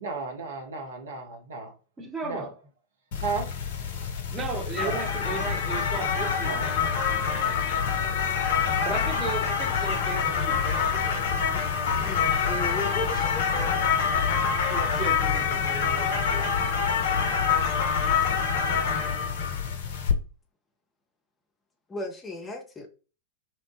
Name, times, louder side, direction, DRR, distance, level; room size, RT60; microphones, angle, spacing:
voice 1, 0.0-1.7 2.2-2.5 3.2-3.5 4.8-5.0 6.4-6.9, right 4 dB, 65° right, 0.7 m, -34 dB
voice 2, 2.0-2.5 4.3-6.7 8.8-11.2 14.6-16.6, right 3 dB, 20° right, 1.0 m, -35 dB
sound 1, 3.1-20.1, left 6 dB, 55° left, 0.5 m, -26 dB
voice 3, 11.9-13.7 21.9-22.9, left 2 dB, 15° left, 0.6 m, -36 dB
2.8 x 2.1 x 2.9 m
figure-of-eight pair, 90°, 0 cm